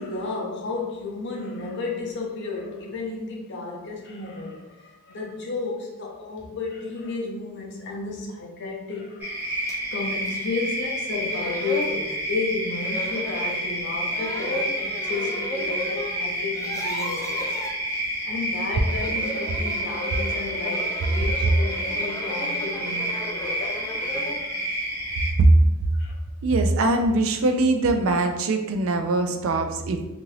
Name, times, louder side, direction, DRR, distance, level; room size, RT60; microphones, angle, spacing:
voice 1, 0.0-9.6 9.9-17.6 18.2-24.6 25.9-26.1, left 3 dB, 55° left, -1 dB, 0.6 m, -33 dB
sound 1, 9.2-25.3, right 1 dB, 10° right, 0.8 m, -29 dB
sound 2, 9.7-9.8 10.3-10.4 11.0-11.1 11.3-12.0 12.8-13.6 14.1-16.1 16.4-17.7 18.7-24.4, left 1 dB, 15° left, 0.3 m, -35 dB
voice 2, 26.4-30.0, right 2 dB, 70° right, 6 dB, 0.4 m, -21 dB
2.7 x 2.5 x 3.1 m, 1.0 s
head